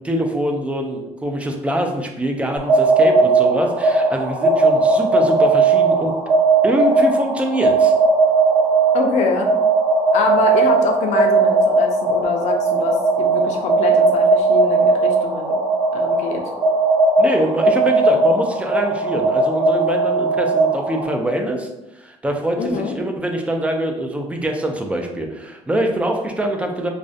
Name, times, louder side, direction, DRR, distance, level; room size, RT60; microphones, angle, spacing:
voice 1, 0.0-6.1 6.6-7.9 17.2-21.7 22.0-26.9, right 1 dB, 10° right, 3 dB, 0.3 m, -24 dB
sound 1, 2.6-21.1, right 3 dB, 70° right, 1.2 m, -17 dB
voice 2, 8.9-9.5 10.1-15.6 15.9-16.4 22.6-22.9, left 4 dB, 65° left, 3 dB, 0.4 m, -24 dB
2.5 x 2.1 x 2.4 m, 0.93 s
cardioid pair, 110°, 12 cm